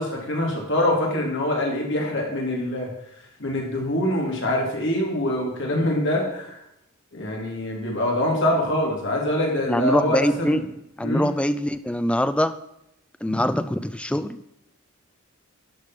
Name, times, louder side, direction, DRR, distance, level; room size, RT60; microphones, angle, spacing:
voice 1, 0.0-2.9 3.4-6.5 7.1-10.6 11.0-11.2, left 1 dB, 55° left, -1 dB, 2.5 m, -24 dB
voice 2, 9.7-12.6 13.2-14.4, equal, 5° left, 12 dB, 0.3 m, -23 dB
11.5 x 5.1 x 5.9 m, 0.82 s
head